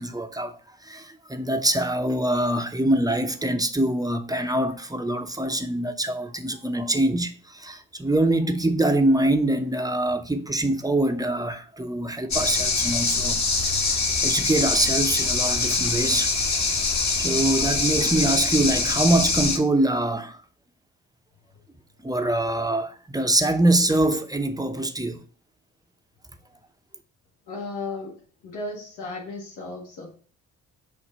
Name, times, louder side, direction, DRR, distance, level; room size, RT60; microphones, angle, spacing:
voice 1, 0.0-16.4 17.2-20.4 22.0-25.2, right 1 dB, 10° right, 0.8 m, -24 dB
sound 1, 12.3-19.6, left 4 dB, 45° left, 1.6 m, -24 dB
voice 2, 27.5-28.2 28.4-30.1, left 3 dB, 70° left, 1.7 m, -35 dB
6.9 x 2.6 x 5.2 m
hypercardioid pair, 45°, 40 cm